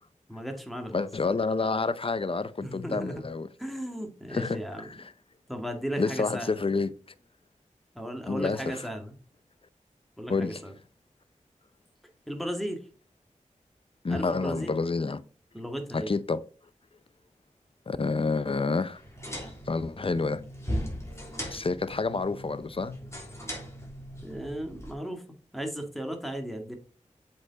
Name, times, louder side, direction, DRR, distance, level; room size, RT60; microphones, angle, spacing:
voice 1, 0.3-1.1 2.6-3.2 3.6-5.0 5.5-6.6 8.0-9.1 10.2-10.7 12.3-12.8 14.1-14.7 15.5-16.1 24.2-26.8, equal, ahead, 1.9 m, -35 dB
voice 2, 0.9-3.5 4.3-4.6 4.9-5.1 6.0-6.9 8.3-8.8 10.3-10.6 14.0-15.2 15.9-16.4 17.9-19.0 19.7-20.4 21.5-23.0, left 4 dB, 45° left, 0.6 m, -29 dB
sound 1, 19.0-24.9, equal, 20° left, 3.1 m, -38 dB
7.6 x 4.6 x 4.1 m
cardioid pair, 45°, 13 cm